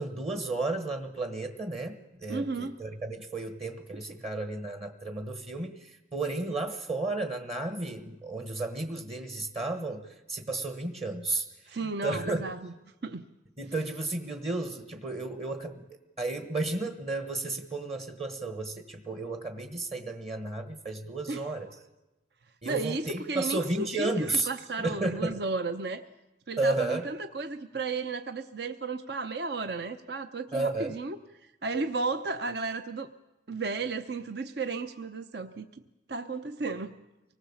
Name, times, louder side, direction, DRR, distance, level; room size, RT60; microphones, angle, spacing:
voice 1, 0.0-12.4 13.6-15.8 16.2-21.7 22.6-24.5 24.8-25.4 26.6-27.0 30.5-30.9, right 2 dB, 30° right, 7 dB, 1.4 m, -33 dB
voice 2, 2.3-2.7 11.7-12.6 13.0-13.2 21.3-21.4 22.6-26.0 26.5-31.2 31.4-33.1 33.5-35.7 36.1-36.9, right 3 dB, 55° right, 9 dB, 0.8 m, -33 dB
25.0 x 19.5 x 7.2 m, 0.99 s
head